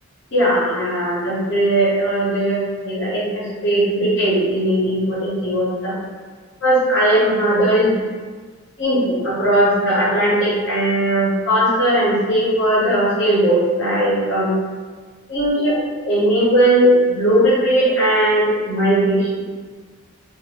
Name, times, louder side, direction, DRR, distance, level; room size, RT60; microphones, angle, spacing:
voice 1, 0.3-5.9 6.6-8.0 8.8-14.6 15.3-19.3, right 1 dB, 55° left, -8 dB, 0.9 m, -18 dB
2.6 x 2.5 x 2.9 m, 1.5 s
head